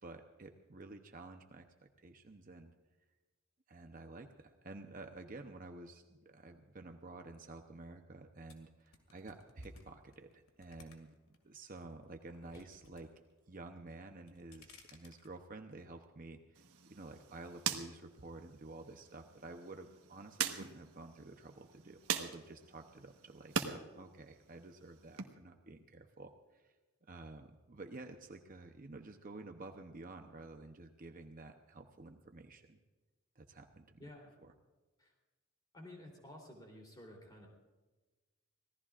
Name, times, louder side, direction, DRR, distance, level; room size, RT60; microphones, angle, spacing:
voice 1, 0.0-2.7 3.7-13.1 13.5-16.6 16.9-26.7 27.1-32.8 33.4-34.0 34.4-34.5, right 2 dB, 40° right, 5 dB, 0.8 m, -51 dB
sound 1, 8.5-11.4 11.8-13.0 13.3-13.8 14.2-15.3, left 4 dB, 70° left, 2.3 m, -60 dB
sound 2, 16.6-23.8 24.1-25.2, right 7 dB, 85° right, 1.3 m, -42 dB
voice 2, 34.0-34.4 35.0-35.1 35.7-37.5, left 1 dB, 20° left, 0 dB, 3.3 m, -53 dB
26.0 x 17.5 x 2.5 m, 1.2 s
head